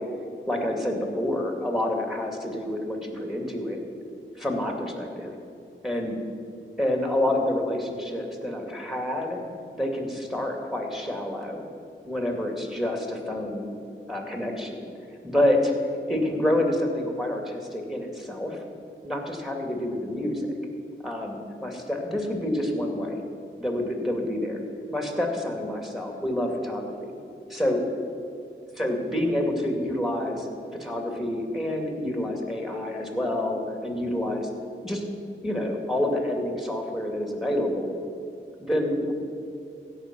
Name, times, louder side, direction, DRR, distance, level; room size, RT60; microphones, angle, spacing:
voice 1, 0.5-3.8 4.4-5.3 5.8-6.2 6.8-9.4 9.7-11.6 12.0-13.8 14.1-14.9 15.2-15.7 16.1-18.6 19.0-20.5 21.0-23.2 23.6-24.6 24.9-27.1 27.5-27.8 28.8-30.5 30.7-34.5 34.8-35.1 35.4-38.0 38.6-39.1, left 1 dB, ahead, 2 dB, 2.2 m, -28 dB
16.0 x 5.7 x 6.0 m, 2.5 s
cardioid pair, 45°, 21 cm